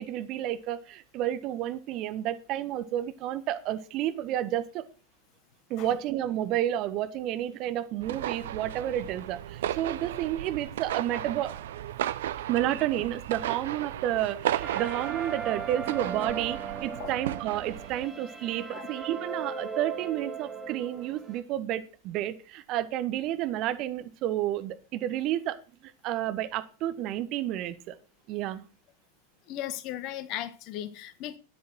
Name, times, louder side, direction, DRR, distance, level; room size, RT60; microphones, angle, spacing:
voice 1, 0.0-4.9 5.7-11.5 12.5-25.6 25.8-27.9 28.3-28.6, right 12 dB, 40° right, 1.2 m, -31 dB
sound 1, 8.0-18.1, right 12 dB, 55° right, 0.6 m, -35 dB
sound 2, 14.6-21.4, right 5 dB, 10° right, 2.1 m, -38 dB
voice 2, 29.5-31.4, left 12 dB, 40° left, 1.3 m, -36 dB
12.5 x 10.0 x 4.6 m
figure-of-eight pair, 90°, 0 cm